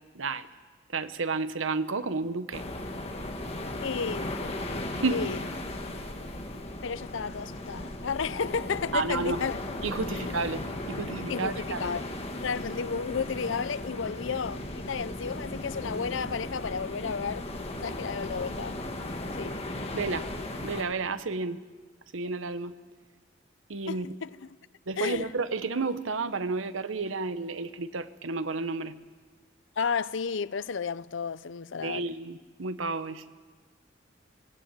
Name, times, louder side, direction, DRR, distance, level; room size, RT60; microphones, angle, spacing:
voice 1, 0.1-0.5 0.9-2.6 5.0-5.3 8.9-9.4 9.8-11.9 19.9-20.3 20.6-21.6 22.1-22.7 23.7-24.1 24.9-29.0 31.8-33.3, right 4 dB, 90° right, 1.0 m, -31 dB
sound 1, 2.5-20.8, left 1 dB, 30° left, 1.8 m, -36 dB
voice 2, 3.8-4.4 5.1-5.4 6.8-9.6 10.1-10.4 11.3-12.0 12.3-17.5 17.8-18.8 19.4-19.6 23.9-24.5 25.0-25.3 29.8-32.1, left 5 dB, 75° left, 0.6 m, -32 dB
21.5 x 17.0 x 8.9 m
head